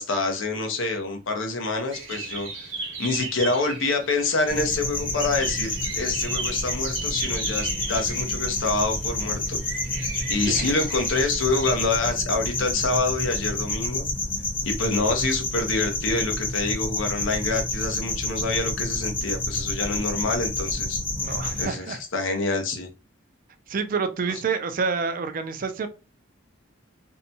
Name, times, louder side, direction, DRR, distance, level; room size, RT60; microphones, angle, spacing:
voice 1, 0.0-2.5 3.0-9.6 10.3-14.0 14.6-21.0 21.6-22.9, left 3 dB, 75° left, 0.7 m, -26 dB
sound 1, 1.9-11.8, right 4 dB, 80° right, 0.9 m, -37 dB
sound 2, 4.5-21.7, left 2 dB, 30° left, 0.9 m, -29 dB
voice 2, 10.4-10.7 21.2-22.0 23.7-25.9, right 5 dB, 45° right, 0.4 m, -28 dB
2.7 x 2.2 x 2.7 m
head